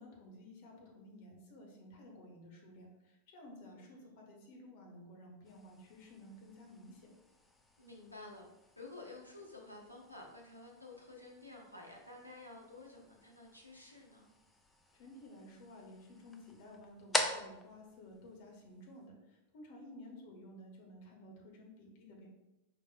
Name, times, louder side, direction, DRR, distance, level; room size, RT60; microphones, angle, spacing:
voice 1, 0.0-7.1 14.9-22.3, left 1 dB, 50° left, 0 dB, 1.1 m, -54 dB
voice 2, 3.6-3.9 7.8-8.5 8.8-14.3, left 2 dB, 90° left, -2 dB, 0.9 m, -52 dB
sound 1, 5.4-19.1, left 1 dB, 10° left, 0.5 m, -45 dB
4.9 x 4.0 x 2.2 m, 0.96 s
figure-of-eight pair, 90°, 0 cm